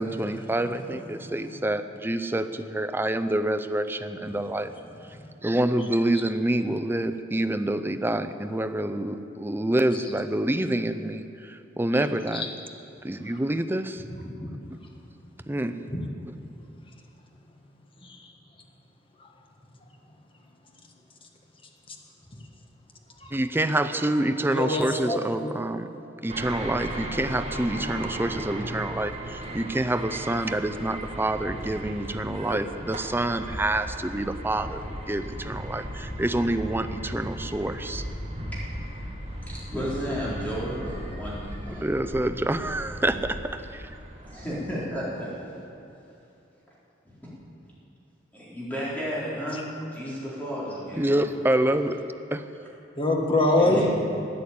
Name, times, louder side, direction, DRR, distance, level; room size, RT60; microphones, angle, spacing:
voice 1, 0.0-4.7 5.4-12.5 13.0-14.0 15.5-15.7 16.3-16.4 23.3-25.9 26.2-38.0 41.8-43.4 43.7-43.8 51.0-52.0 52.3-52.7, right 1 dB, 10° right, 9 dB, 0.5 m, -27 dB
voice 2, 14.1-14.5 15.9-16.0 18.0-18.2 24.5-25.6 49.5-49.6 53.0-53.9, left 2 dB, 30° left, 1 dB, 1.6 m, -25 dB
sound 1, 26.3-44.6, right 1 dB, 35° right, 1.8 m, -36 dB
voice 3, 39.5-41.9 44.2-45.5 47.2-47.3 48.3-51.2 53.6-53.9, equal, 10° left, -8 dB, 4.2 m, -33 dB
13.0 x 9.7 x 8.5 m, 2.8 s
head